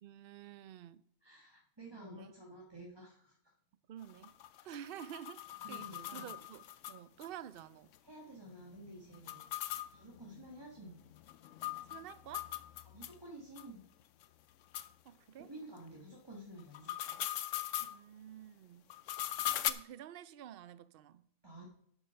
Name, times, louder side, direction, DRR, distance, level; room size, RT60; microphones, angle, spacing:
voice 1, 0.0-1.0 2.0-2.3 3.9-4.3 4.6-7.9 11.9-12.5 15.0-15.5 17.8-18.9 19.7-21.3, right 10 dB, 60° right, 0.6 m, -50 dB
voice 2, 1.2-3.3 4.6-4.7 5.6-6.3 8.0-9.5 9.9-11.0 12.8-13.8 15.4-17.2 21.4-21.7, right 1 dB, 20° right, 1.5 m, -51 dB
sound 1, 4.0-7.3 7.6-7.7 7.9-8.0 9.1-13.2 13.6-13.7 14.2-14.3 14.7-14.9 16.6-18.0 18.9-19.7, left 13 dB, 65° left, 0.9 m, -40 dB
8.6 x 8.4 x 5.7 m
omnidirectional pair, 1.5 m